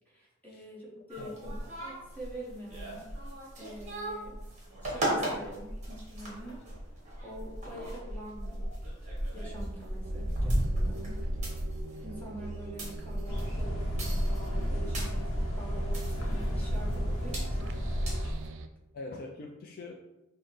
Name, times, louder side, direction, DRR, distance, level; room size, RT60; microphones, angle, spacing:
voice 1, 0.1-3.1 3.6-4.4 4.8-6.6 7.2-8.7 9.3-11.3 12.0-17.7, right 1 dB, 10° left, -5 dB, 1.1 m, -45 dB
voice 2, 0.9-1.5 18.9-20.0, left 3 dB, 45° left, 1 dB, 0.3 m, -44 dB
sound 1, 1.1-18.5, right 1 dB, 35° right, 1.3 m, -36 dB
sound 2, 10.0-18.7, right 3 dB, 60° right, 0.3 m, -43 dB
sound 3, 13.3-18.3, equal, 70° left, 0.8 m, -32 dB
6.2 x 2.1 x 3.1 m, 0.97 s
head